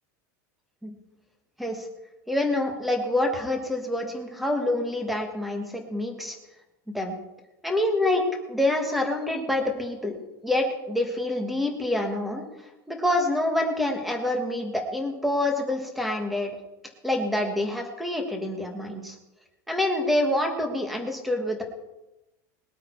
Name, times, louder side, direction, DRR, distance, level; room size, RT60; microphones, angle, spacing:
voice 1, 2.3-6.4 6.9-7.2 7.6-10.2 10.4-12.4 12.9-16.5 17.0-19.2 19.7-21.6, left 1 dB, ahead, 4 dB, 1.5 m, -26 dB
20.5 x 8.6 x 4.6 m, 0.98 s
supercardioid pair, 180°, 9 cm